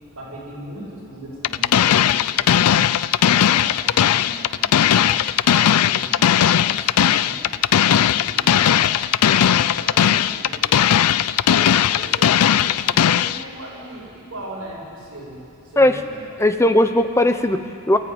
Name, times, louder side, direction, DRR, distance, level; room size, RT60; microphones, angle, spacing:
voice 1, 0.1-3.0 3.2-7.5 8.1-10.7 11.5-15.4 15.6-16.3, right 1 dB, 65° right, -5 dB, 7.5 m, -38 dB
sound 1, 1.4-13.4, left 9 dB, 90° left, 0.4 m, -17 dB
voice 2, 16.4-18.0, left 1 dB, 10° left, 8 dB, 0.8 m, -17 dB
23.0 x 13.5 x 8.9 m, 2.5 s
head